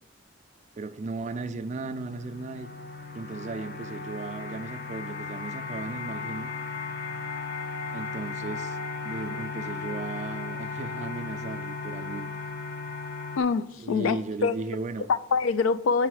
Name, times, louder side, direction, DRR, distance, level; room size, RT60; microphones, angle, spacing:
voice 1, 0.7-2.7 3.1-6.5 7.9-12.3 13.8-15.1, right 3 dB, 35° right, 0.3 m, -36 dB
sound 1, 1.4-13.4, left 4 dB, 45° left, 0.7 m, -36 dB
voice 2, 13.4-14.6 15.1-16.1, left 5 dB, 80° left, 0.3 m, -25 dB
7.5 x 3.6 x 6.3 m
head